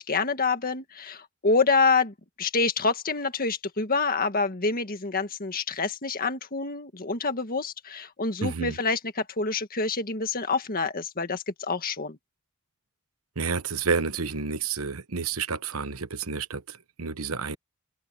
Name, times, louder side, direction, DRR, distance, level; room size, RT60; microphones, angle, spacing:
voice 1, 0.0-12.2, left 4 dB, 40° left, 1.8 m, -27 dB
voice 2, 8.4-8.7 13.4-17.6, right 5 dB, 70° right, 1.0 m, -30 dB
open air
head